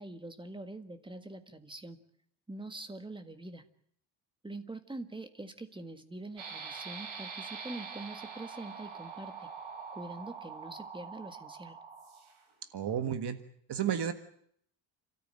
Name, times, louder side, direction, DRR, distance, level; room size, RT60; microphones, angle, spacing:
voice 1, 0.0-2.0 2.5-3.6 4.4-9.5 9.9-11.8, right 2 dB, 10° right, 8 dB, 1.6 m, -44 dB
sound 1, 6.4-12.5, right 5 dB, 80° right, 4.6 m, -44 dB
voice 2, 12.7-13.4 13.7-14.1, right 9 dB, 55° right, 10 dB, 1.6 m, -32 dB
29.5 x 13.5 x 8.9 m, 0.68 s
cardioid pair, 150°, 47 cm